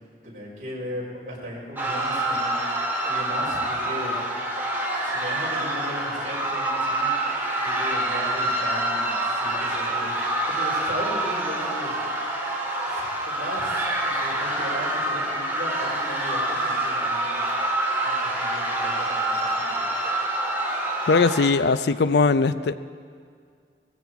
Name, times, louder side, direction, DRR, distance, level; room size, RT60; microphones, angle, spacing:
voice 1, 0.2-2.5 3.0-4.2 5.0-7.1 7.6-11.9 12.9-17.4 18.0-20.1, equal, 45° right, -5 dB, 4.8 m, -37 dB
sound 1, 1.8-21.5, right 1 dB, 10° right, 1.9 m, -26 dB
voice 2, 21.1-22.8, left 4 dB, 65° left, 14 dB, 0.4 m, -20 dB
19.5 x 15.0 x 4.7 m, 2.1 s
head